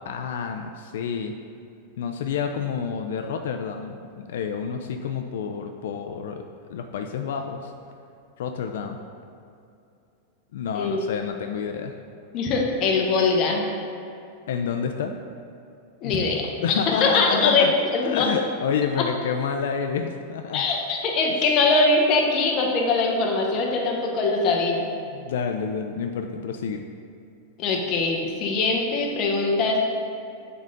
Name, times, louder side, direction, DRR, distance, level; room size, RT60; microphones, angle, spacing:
voice 1, 0.0-1.3 2.0-6.4 6.7-7.7 8.4-9.0 10.5-12.0 14.5-15.1 16.0-16.1 16.6-17.7 18.0-20.6 21.4-21.5 25.1-26.8, left 6 dB, 75° left, 5 dB, 0.4 m, -29 dB
voice 2, 12.3-13.7 16.0-16.5 16.8-18.3 19.0-19.1 20.5-24.9 27.6-29.8, left 3 dB, 30° left, 0 dB, 0.8 m, -22 dB
7.4 x 3.8 x 3.8 m, 2.6 s
supercardioid pair, 175°, 0 cm